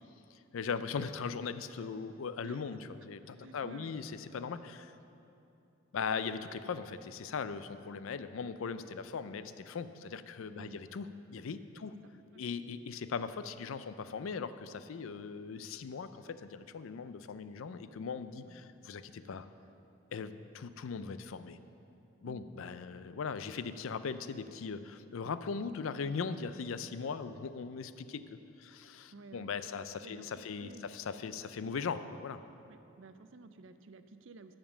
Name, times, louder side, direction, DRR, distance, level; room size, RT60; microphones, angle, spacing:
voice 1, 0.3-5.0 5.9-12.0 12.4-19.5 20.1-21.6 22.2-32.4, left 5 dB, 75° left, 12 dB, 0.4 m, -39 dB
voice 2, 2.4-3.1 3.3-3.9 8.6-8.8 10.5-10.8 11.7-12.4 18.4-18.6 22.2-22.5 29.1-29.5 30.0-30.9 32.7-34.6, right 3 dB, 65° right, 11 dB, 0.5 m, -53 dB
12.5 x 5.2 x 7.2 m, 2.8 s
head